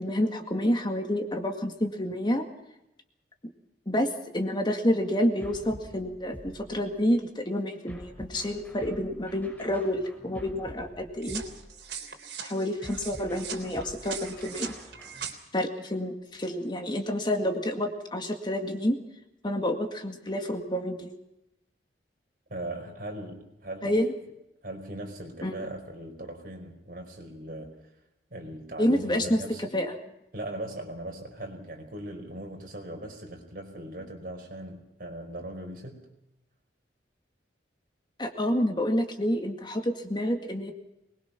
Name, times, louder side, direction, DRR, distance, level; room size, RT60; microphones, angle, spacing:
voice 1, 0.0-2.5 3.9-11.4 12.4-14.7 15.5-19.0 19.4-21.1 23.8-24.1 25.4-25.6 28.8-29.4 29.7-29.9 38.2-40.7, left 1 dB, 25° left, 4 dB, 2.1 m, -28 dB
sound 1, 5.4-7.1 7.9-12.1 12.8-15.3, equal, 10° left, 6.3 m, -47 dB
sound 2, 11.2-15.3, right 7 dB, 75° right, 3.6 m, -40 dB
voice 2, 22.5-24.0 24.6-27.7 28.3-29.7 30.3-36.1, right 1 dB, 55° right, 3 dB, 5.0 m, -39 dB
23.5 x 21.5 x 5.9 m, 0.88 s
head